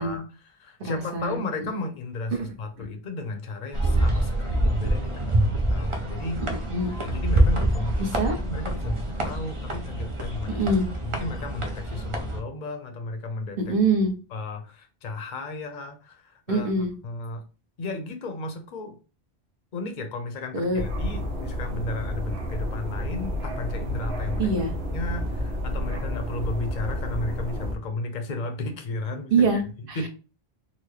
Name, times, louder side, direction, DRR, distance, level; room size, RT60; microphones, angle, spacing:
voice 1, 0.0-6.4 7.0-10.6 11.0-13.7 14.3-17.4 17.8-19.0 19.7-24.5 24.9-30.1, left 2 dB, 55° left, 6 dB, 0.8 m, -34 dB
voice 2, 0.8-1.4 2.3-2.5 6.5-6.9 8.0-8.4 10.5-10.9 13.6-14.1 16.5-16.9 20.5-20.8 24.4-24.7 29.3-29.6 29.9-30.0, right 3 dB, 60° right, 3 dB, 1.1 m, -24 dB
sound 1, 3.7-12.4, right 1 dB, 35° right, 0.6 m, -26 dB
sound 2, 20.7-27.7, equal, 80° right, 1.1 m, -30 dB
4.1 x 2.1 x 3.1 m, 0.33 s
omnidirectional pair, 1.1 m